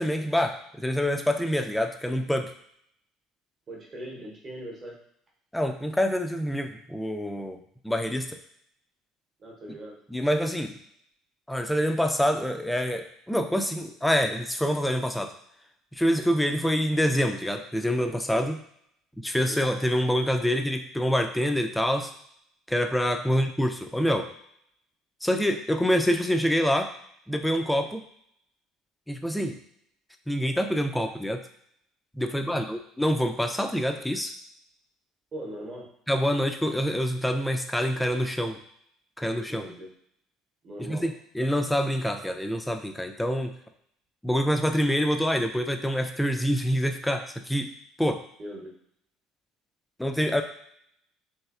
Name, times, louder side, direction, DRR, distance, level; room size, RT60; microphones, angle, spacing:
voice 1, 0.0-2.5 5.5-8.4 10.1-10.8 11.5-15.3 15.9-18.6 19.2-22.1 22.7-24.3 25.2-26.9 27.3-28.0 29.1-29.6 30.3-31.4 32.2-34.3 36.1-38.6 39.2-39.7 40.9-43.6 44.2-47.7 48.0-48.2 50.0-50.4, equal, 5° left, 5 dB, 0.3 m, -26 dB
voice 2, 3.7-4.9 9.4-10.0 19.5-19.7 23.3-23.4 29.3-29.4 32.3-32.8 35.3-35.9 39.5-39.9 40.6-41.1 48.4-48.7, right 1 dB, 35° right, -2 dB, 0.9 m, -40 dB
3.0 x 2.6 x 2.4 m, 0.69 s
figure-of-eight pair, 60°, 0 cm